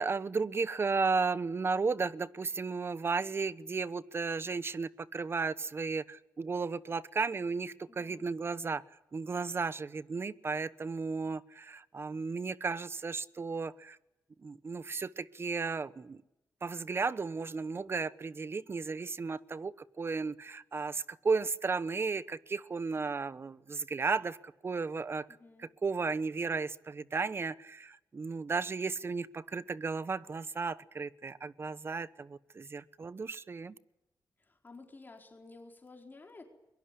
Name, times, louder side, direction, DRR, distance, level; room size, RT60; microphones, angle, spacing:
voice 1, 0.0-8.8 9.1-14.0 14.4-16.2 16.6-24.4 24.6-25.3 25.8-33.7, right 4 dB, 35° right, 17 dB, 1.0 m, -34 dB
voice 2, 7.9-8.3 25.3-25.7 34.4-36.4, left 3 dB, 30° left, 3 dB, 4.5 m, -53 dB
23.5 x 23.0 x 9.9 m, 0.92 s
wide cardioid pair, 120°, 7 cm